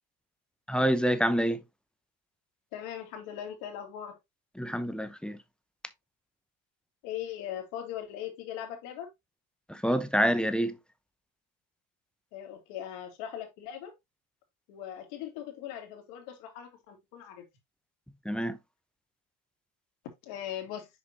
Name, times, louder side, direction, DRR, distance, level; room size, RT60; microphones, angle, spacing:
voice 1, 0.7-1.6 4.6-5.4 9.7-10.8 18.2-18.6, equal, ahead, 0.6 m, -27 dB
voice 2, 2.7-4.2 7.0-9.1 12.3-13.9 14.7-17.5 20.2-20.9, left 10 dB, 80° left, 2.5 m, -40 dB
6.7 x 5.0 x 2.9 m
supercardioid pair, 110°, 41 cm